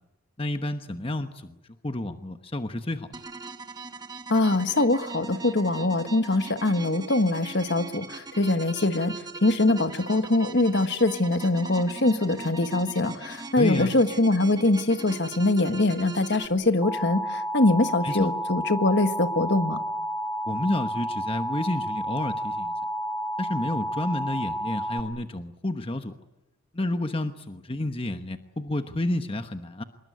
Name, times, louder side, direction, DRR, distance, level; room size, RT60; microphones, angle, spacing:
voice 1, 0.4-1.5 1.8-3.1 13.6-13.9 18.0-18.3 20.5-22.7 23.4-26.1 26.7-29.8, left 1 dB, 25° left, 8 dB, 1.1 m, -30 dB
sound 1, 3.1-16.5, right 3 dB, 20° right, 1.8 m, -40 dB
voice 2, 4.3-9.2 9.4-19.8, left 2 dB, 55° left, 10 dB, 1.6 m, -23 dB
Alarm, 16.8-25.0, equal, 5° left, 1.6 m, -31 dB
26.5 x 22.0 x 9.6 m, 0.94 s
head